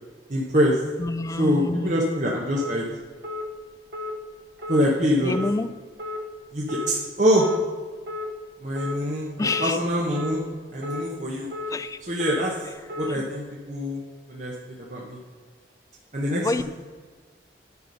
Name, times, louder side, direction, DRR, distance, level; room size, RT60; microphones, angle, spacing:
voice 1, 0.3-0.8 1.4-2.8 4.7-5.4 6.5-7.5 8.6-10.4 10.7-11.5 12.0-12.5 13.0-14.0 14.3-15.2 16.1-16.6, equal, 45° right, -3 dB, 1.1 m, -24 dB
voice 2, 1.0-1.9 5.2-5.7 9.4-9.8 11.7-12.0 13.1-13.2 16.4-16.6, left 2 dB, 20° left, 12 dB, 0.3 m, -27 dB
sound 1, 2.6-2.8 3.2-3.4 3.9-4.1 4.6-4.8 5.3-5.5 6.0-6.2 6.7-6.9 7.4-7.6 8.1-8.3 8.8-9.0 9.4-9.7 10.1-10.3 10.8-11.0 11.5-11.7 12.2-12.4 12.9-13.1, left 2 dB, 70° right, 1.4 m, -32 dB
9.6 x 6.0 x 5.3 m, 1.5 s
head